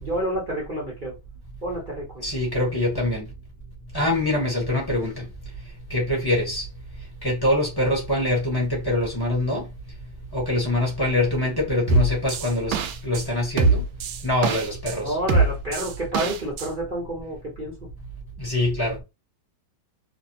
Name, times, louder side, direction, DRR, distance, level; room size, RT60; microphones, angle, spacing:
voice 1, 0.0-1.1 1.6-2.3 15.0-17.7, right 1 dB, 45° right, 0.6 m, -29 dB
voice 2, 2.2-3.2 3.9-5.3 5.9-6.7 7.2-9.7 10.3-12.8 13.0-13.8 14.2-15.2 18.4-19.0, left 1 dB, 15° left, 0.8 m, -24 dB
sound 1, 11.9-13.2 13.6-14.9 15.3-16.7, right 3 dB, 80° right, 1.3 m, -22 dB
3.1 x 2.6 x 2.7 m
omnidirectional pair, 2.2 m